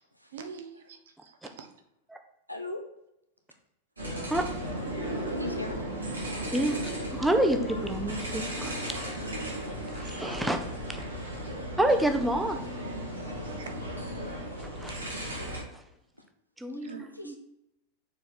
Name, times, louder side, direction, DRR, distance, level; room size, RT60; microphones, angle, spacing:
voice 1, 0.3-1.7 6.1-6.3 13.4-13.7 16.8-17.1, right 6 dB, 60° right, 5 dB, 0.9 m, -45 dB
voice 2, 2.5-2.8 5.3-5.9 13.2-13.6 16.1-16.3 16.7-17.4, left 2 dB, 90° left, 4 dB, 0.9 m, -39 dB
sound 1, 4.0-15.6, equal, 80° right, 2.2 m, -35 dB
voice 3, 6.5-9.0 9.9-10.6 11.8-13.0 14.6-15.0 15.7-15.8 16.6-17.4, right 1 dB, 5° right, 5 dB, 0.8 m, -29 dB
6.3 x 4.5 x 4.3 m, 0.84 s
figure-of-eight pair, 90°, 0 cm